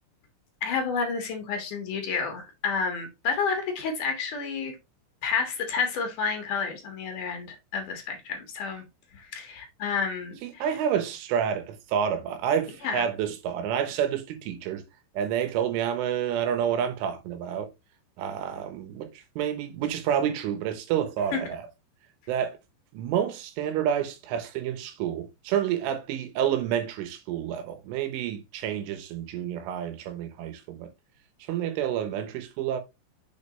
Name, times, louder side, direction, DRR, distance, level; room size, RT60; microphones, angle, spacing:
voice 1, 0.6-4.8 5.2-8.8 9.1-10.7 12.8-13.1 21.3-21.4, left 5 dB, 60° left, 2.4 m, -30 dB
voice 2, 10.4-14.8 15.2-17.7 18.2-19.1 19.4-21.6 22.3-22.6 22.9-30.9 31.5-32.8, right 9 dB, 90° right, 3.6 m, -29 dB
7.3 x 5.4 x 3.1 m
omnidirectional pair, 5.5 m